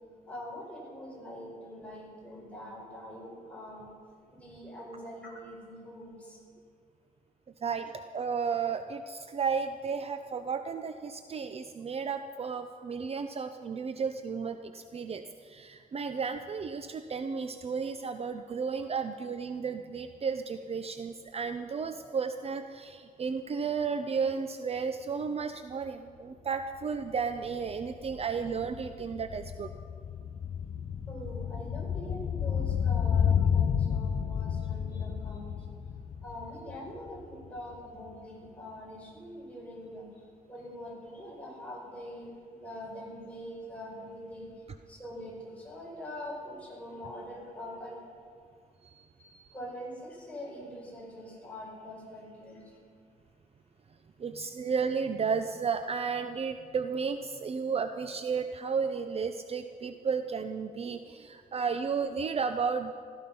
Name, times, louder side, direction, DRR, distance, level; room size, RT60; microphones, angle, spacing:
voice 1, 0.3-3.9 4.3-6.4 31.1-35.5 36.2-40.0 40.5-44.5 44.9-48.0 49.2-52.6, equal, 10° left, -4 dB, 5.3 m, -43 dB
voice 2, 7.6-29.7 48.8-49.1 54.2-63.0, right 5 dB, 40° right, 8 dB, 0.6 m, -33 dB
sound 1, 26.7-26.8 27.1-37.5 37.7-37.8, left 8 dB, 55° left, 0.5 m, -31 dB
16.0 x 14.5 x 5.4 m, 2.2 s
wide cardioid pair, 145°, 15 cm